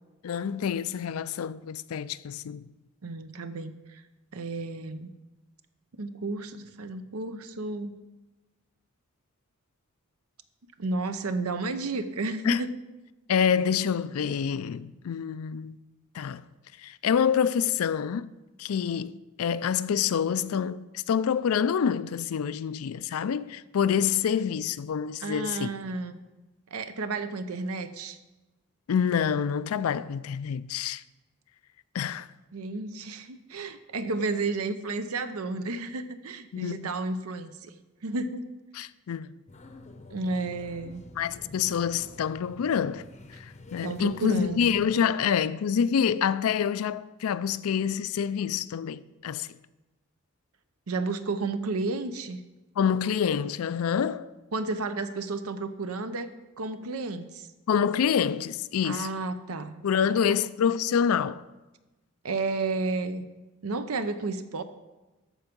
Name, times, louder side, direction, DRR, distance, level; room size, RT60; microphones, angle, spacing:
voice 1, 0.2-2.7 12.4-12.7 13.3-15.8 16.1-16.5 16.8-18.3 18.6-25.7 28.9-31.0 31.9-32.3 36.5-36.9 38.7-39.4 41.2-49.5 52.8-54.3 57.7-59.1 59.8-61.4, left 7 dB, 80° left, 0.4 m, -27 dB
voice 2, 3.0-4.0 4.3-5.1 6.0-8.0 10.8-12.8 25.2-26.2 26.7-28.2 32.5-37.7 38.0-38.5 40.1-41.0 43.8-44.7 50.9-52.4 54.5-57.5 58.8-60.1 62.2-63.3 63.6-64.6, right 3 dB, 90° right, 0.7 m, -32 dB
sound 1, 39.5-44.9, left 2 dB, 30° left, 0.6 m, -48 dB
13.5 x 4.6 x 5.3 m
head